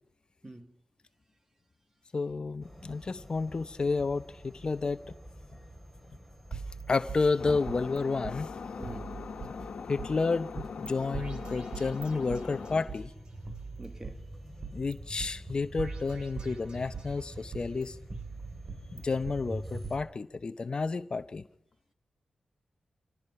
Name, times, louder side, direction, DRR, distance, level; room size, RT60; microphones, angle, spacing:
voice 1, 2.1-5.1 6.5-6.6 6.9-8.6 9.5-13.1 14.7-18.2 18.9-21.5, left 4 dB, 45° left, 0.8 m, -31 dB
sound 1, 2.6-20.0, right 1 dB, ahead, 3.3 m, -47 dB
sound 2, 6.5-8.0 8.2-8.4 8.8-10.1 10.6-10.9 11.1-13.0 13.5-14.9 15.2-15.3 15.8-17.1 17.5-19.4 19.8-19.9, right 5 dB, 45° right, 2.6 m, -42 dB
sound 3, 7.4-12.8, left 5 dB, 75° left, 1.5 m, -41 dB
voice 2, 8.8-9.1 13.8-14.2, right 1 dB, 20° right, 1.5 m, -45 dB
25.0 x 18.0 x 5.8 m
cardioid pair, 60°, 2 cm